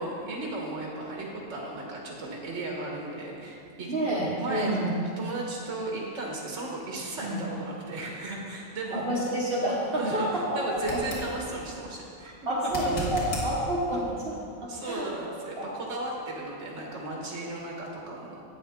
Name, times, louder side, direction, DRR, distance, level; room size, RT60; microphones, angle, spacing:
voice 1, 0.0-3.9 4.4-4.7 5.2-9.3 10.0-12.3 12.8-13.1 14.7-18.4, right 2 dB, 65° right, -2 dB, 1.6 m, -35 dB
voice 2, 3.9-4.9 7.2-7.4 8.9-11.0 12.5-14.4 14.8-15.1 15.6-15.7, right 1 dB, 50° right, -4 dB, 1.3 m, -28 dB
sound 1, 10.8-11.3 12.6-13.5 16.5-16.6, equal, 85° left, 2.2 m, -34 dB
11.5 x 8.3 x 3.6 m, 2.4 s
omnidirectional pair, 1.3 m